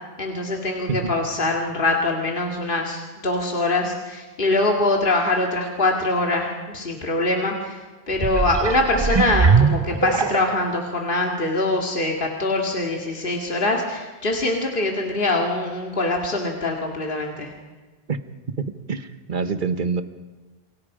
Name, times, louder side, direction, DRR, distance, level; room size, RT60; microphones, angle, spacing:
voice 1, 0.2-7.8 8.1-17.5, left 2 dB, 55° left, 1 dB, 2.4 m, -23 dB
sound 1, 8.1-10.8 11.4-11.5, right 5 dB, 30° right, 0.6 m, -21 dB
voice 2, 18.6-20.0, right 5 dB, 50° right, 10 dB, 1.4 m, -26 dB
29.0 x 22.5 x 5.0 m, 1.3 s
omnidirectional pair, 1.1 m